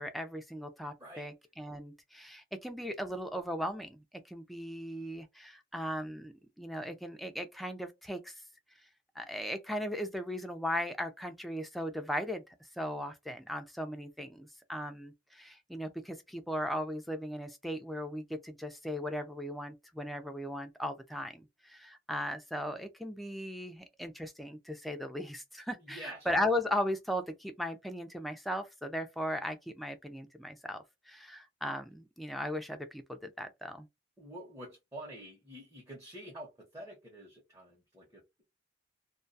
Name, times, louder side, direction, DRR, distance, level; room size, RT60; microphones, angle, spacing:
voice 1, 0.0-8.4 9.2-33.9, left 1 dB, ahead, 0.4 m, -37 dB
voice 2, 25.8-26.3 34.2-38.4, right 1 dB, 15° right, 0.8 m, -48 dB
2.3 x 2.2 x 2.6 m
head